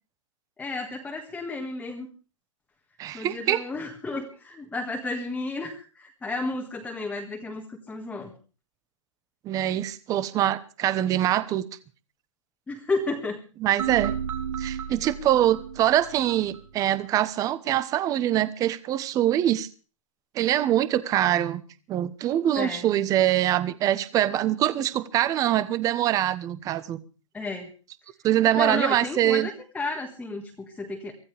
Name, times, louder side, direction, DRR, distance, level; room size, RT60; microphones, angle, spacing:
voice 1, 0.6-2.1 3.1-8.3 12.7-13.4 22.5-22.8 27.3-27.7 28.6-31.1, left 3 dB, 10° left, 1 dB, 1.9 m, -32 dB
voice 2, 3.0-3.6 9.4-11.6 13.6-14.2 14.6-19.7 20.3-21.6 21.9-27.0 28.2-29.5, right 12 dB, 20° right, 15 dB, 1.1 m, -24 dB
sound 1, 13.8-16.9, right 8 dB, 70° right, 3.7 m, -33 dB
24.5 x 15.5 x 3.5 m, 0.36 s
hypercardioid pair, 155°, 17 cm